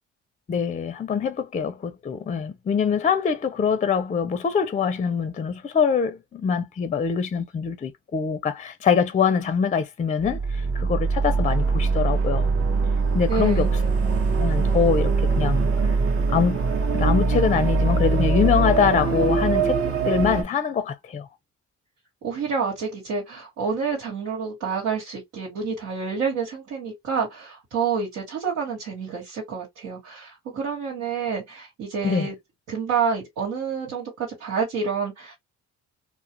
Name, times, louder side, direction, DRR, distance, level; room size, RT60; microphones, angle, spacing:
voice 1, 0.5-12.5 13.1-13.7 14.4-16.0 16.3-16.6 16.9-21.3 32.0-32.3, left 6 dB, 25° left, 0.4 m, -24 dB
sound 1, 10.2-20.4, right 4 dB, 50° right, 0.9 m, -22 dB
voice 2, 13.3-13.7 22.2-32.3 32.7-35.4, right 5 dB, 90° right, 1.3 m, -28 dB
2.4 x 2.1 x 2.7 m
cardioid pair, 90°, 30 cm